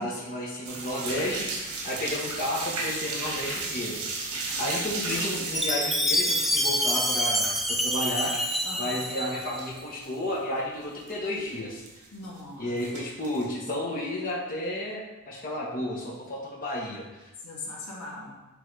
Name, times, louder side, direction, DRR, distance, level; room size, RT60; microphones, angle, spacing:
voice 1, 0.0-4.3 4.6-11.8 12.6-17.3, left 1 dB, 40° left, -4 dB, 1.3 m, -32 dB
sound 1, 0.6-8.6 8.9-9.7 10.0-10.1 10.6-10.7 10.8-11.1 11.9-12.4 12.8-13.4, right 3 dB, 75° right, 2.1 m, -34 dB
Chime, 5.5-9.7, equal, ahead, 0.5 m, -27 dB
voice 2, 8.6-9.0 12.1-12.7 17.4-18.4, left 2 dB, 75° left, -3 dB, 1.8 m, -40 dB
8.0 x 3.9 x 4.8 m, 1.1 s
head